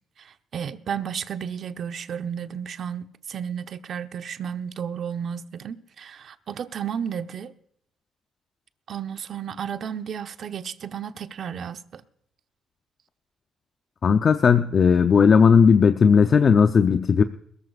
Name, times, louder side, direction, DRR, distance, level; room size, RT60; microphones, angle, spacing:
voice 1, 0.2-7.5 8.9-12.0, right 8 dB, 60° right, 0.9 m, -33 dB
voice 2, 14.0-17.2, left 6 dB, 45° left, 0.7 m, -16 dB
22.0 x 14.0 x 2.5 m
cardioid pair, 90°, 0 cm